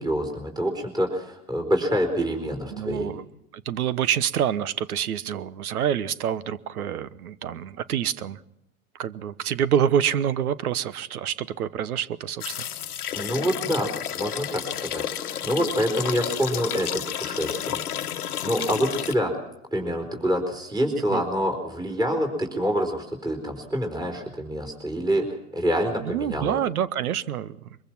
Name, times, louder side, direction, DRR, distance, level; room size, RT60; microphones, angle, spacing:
voice 1, 0.0-3.1 13.1-13.9 14.2-17.8 18.4-19.3 19.7-25.3 25.5-26.6, equal, 10° right, 3 dB, 4.3 m, -26 dB
voice 2, 2.7-3.2 3.5-8.4 8.9-12.7 21.1-21.2 26.0-27.6, right 9 dB, 80° right, 18 dB, 1.1 m, -27 dB
sound 1, 12.4-19.2, left 10 dB, 90° left, 1.2 m, -31 dB
23.5 x 22.5 x 6.1 m, 0.83 s
hypercardioid pair, 95°, 44 cm